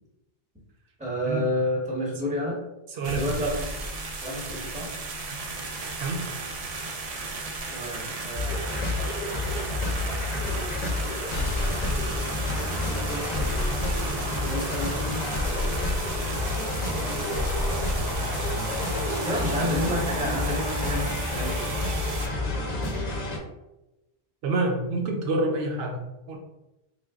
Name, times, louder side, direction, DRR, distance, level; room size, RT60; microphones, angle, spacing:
voice 1, 1.0-2.6 3.1-3.9 4.2-4.9 7.7-9.1 14.4-15.3 19.2-22.0, left 1 dB, 10° right, -4 dB, 0.8 m, -30 dB
voice 2, 2.9-3.3 6.0-6.3 24.4-26.4, right 2 dB, 75° right, 2 dB, 0.8 m, -27 dB
sound 1, 3.0-22.3, right 3 dB, 55° right, 0.4 m, -34 dB
sound 2, 8.3-23.4, left 2 dB, 50° left, 0.6 m, -29 dB
3.3 x 2.2 x 3.5 m, 0.97 s
omnidirectional pair, 1.0 m